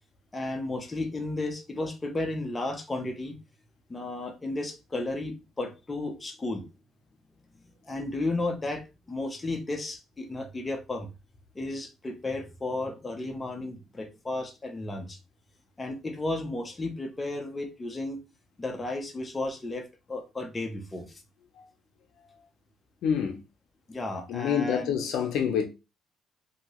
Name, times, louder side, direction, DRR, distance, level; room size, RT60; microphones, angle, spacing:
voice 1, 0.3-3.4 3.9-6.7 7.8-11.1 11.5-15.2 15.8-18.2 18.6-21.2 23.9-24.9, left 2 dB, 15° left, 0.6 m, -33 dB
voice 2, 23.0-23.4 24.3-25.7, left 8 dB, 70° left, 0.6 m, -27 dB
2.9 x 2.7 x 2.9 m
cardioid pair, 135°, 0 cm